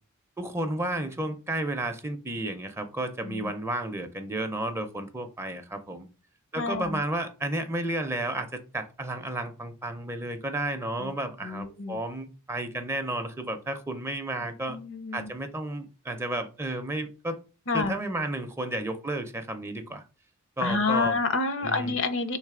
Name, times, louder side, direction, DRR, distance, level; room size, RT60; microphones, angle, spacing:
voice 1, 0.4-6.1 6.5-14.8 15.1-17.4 17.7-20.0 20.6-21.2 21.6-22.0, right 1 dB, 10° right, 7 dB, 0.5 m, -32 dB
voice 2, 6.6-7.0 11.0-11.1 11.4-12.0 14.4-15.3 17.7-17.9 20.6-22.4, left 4 dB, 60° left, 10 dB, 0.6 m, -29 dB
3.4 x 3.2 x 4.8 m, 0.33 s
head